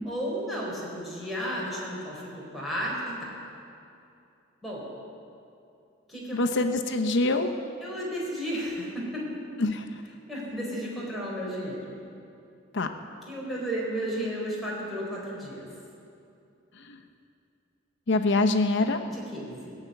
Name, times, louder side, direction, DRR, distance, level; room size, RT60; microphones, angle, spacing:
voice 1, 0.0-3.4 4.6-4.8 6.1-6.4 7.8-9.6 10.3-11.8 13.3-15.7 19.1-19.7, equal, ahead, -6 dB, 4.7 m, -33 dB
voice 2, 6.3-7.5 9.6-9.8 12.7-12.9 16.9-17.0 18.1-19.0, left 2 dB, 65° left, 6 dB, 0.9 m, -24 dB
19.0 x 7.3 x 9.2 m, 2.6 s
head